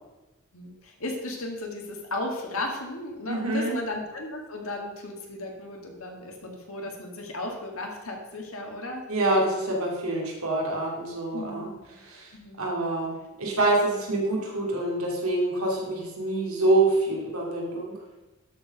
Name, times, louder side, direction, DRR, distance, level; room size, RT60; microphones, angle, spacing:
voice 1, 0.5-9.1 11.3-11.9 12.3-12.7, left 2 dB, 80° left, 1 dB, 2.0 m, -35 dB
voice 2, 3.3-3.8 9.1-11.7 12.0-12.3 12.6-17.9, right 2 dB, 85° right, -2 dB, 2.9 m, -26 dB
12.5 x 4.8 x 5.2 m, 1.1 s
head